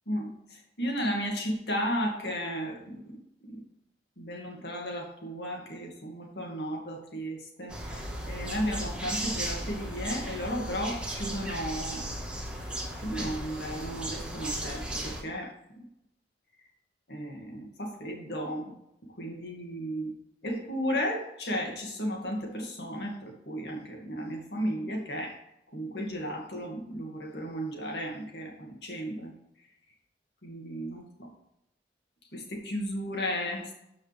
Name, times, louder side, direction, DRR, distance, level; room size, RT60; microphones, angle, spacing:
voice 1, 0.1-3.0 3.5-3.6 4.2-12.1 13.0-15.8 17.1-18.7 19.2-20.1 20.4-25.3 25.7-29.3 30.4-31.3 32.3-33.7, equal, 65° left, 1 dB, 2.4 m, -34 dB
sound 1, 7.7-15.2, right 1 dB, 5° right, 1.6 m, -36 dB
13.0 x 5.6 x 3.5 m, 0.82 s
head